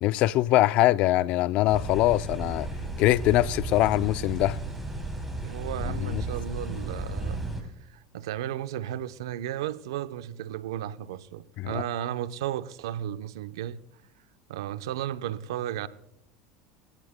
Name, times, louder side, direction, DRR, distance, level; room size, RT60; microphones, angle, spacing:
voice 1, 0.0-2.7 3.0-4.6 5.9-6.2 11.6-11.8, left 16 dB, 60° left, 0.4 m, -23 dB
sound 1, 1.7-7.6, right 2 dB, 5° right, 5.1 m, -34 dB
voice 2, 5.4-13.8 14.5-15.9, right 11 dB, 80° right, 0.7 m, -34 dB
28.0 x 16.0 x 2.2 m
hypercardioid pair, 90°, 2 cm